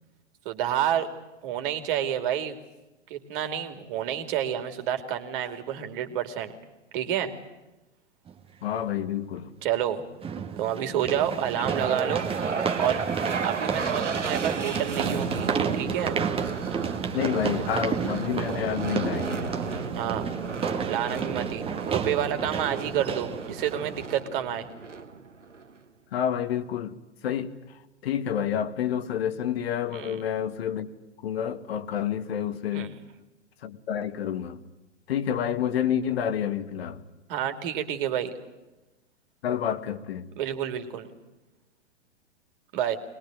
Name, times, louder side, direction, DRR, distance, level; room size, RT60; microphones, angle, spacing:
voice 1, 0.4-1.1 1.4-2.6 3.1-6.5 6.9-7.3 9.6-10.0 10.6-12.3 12.8-13.0 13.4-16.2 19.9-20.3 20.9-24.7 29.9-30.2 32.7-33.0 37.3-38.3 40.4-41.1 42.7-43.0, right 10 dB, 45° right, 8 dB, 2.8 m, -29 dB
sound 1, 8.3-8.4 10.2-24.1, right 6 dB, 15° right, 1.7 m, -31 dB
voice 2, 8.6-9.6 11.6-11.7 17.1-19.8 26.1-27.0 27.2-30.9 31.2-32.9 33.6-34.6 35.1-37.0 39.4-40.3, left 9 dB, 55° left, 12 dB, 1.8 m, -29 dB
sound 2, 11.6-25.8, right 4 dB, 85° right, 1.7 m, -34 dB
23.0 x 21.5 x 9.2 m, 1.0 s
figure-of-eight pair, 110°, 36 cm